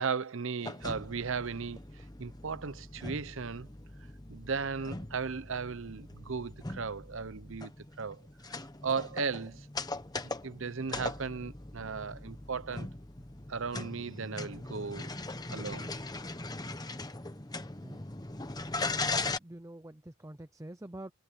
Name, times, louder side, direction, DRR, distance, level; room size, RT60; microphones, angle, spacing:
voice 1, 0.0-3.7 4.3-7.7 8.0-8.2 8.5-9.7 10.4-12.9 13.5-15.1 15.5-15.9, right 5 dB, 60° right, 0.7 m, -36 dB
sound 1, 0.6-19.4, left 3 dB, 15° left, 1.0 m, -40 dB
voice 2, 18.9-21.1, right 1 dB, 15° right, 0.6 m, -46 dB
head